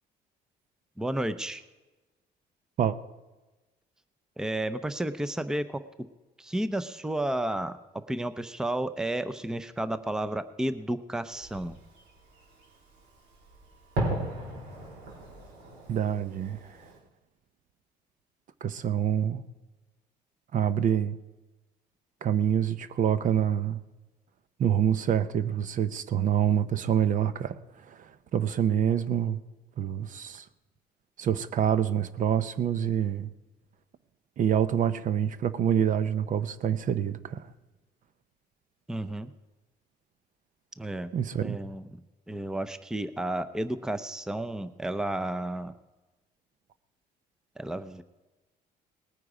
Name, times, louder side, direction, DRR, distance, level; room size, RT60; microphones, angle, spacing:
voice 1, 1.0-1.6 4.4-5.8 6.4-11.8 38.9-39.3 40.8-41.1 41.4-41.9 42.3-45.7 47.6-48.0, right 1 dB, 5° right, 0.6 m, -32 dB
Fireworks, 11.3-17.0, right 1 dB, 90° right, 3.8 m, -37 dB
voice 2, 15.9-16.6 18.6-19.4 20.5-21.2 22.2-23.8 24.6-27.6 27.9-29.4 29.8-30.4 31.2-33.3 34.4-37.4 41.1-41.6, right 9 dB, 50° right, 0.7 m, -26 dB
19.0 x 9.2 x 4.9 m
cardioid pair, 110°, 17 cm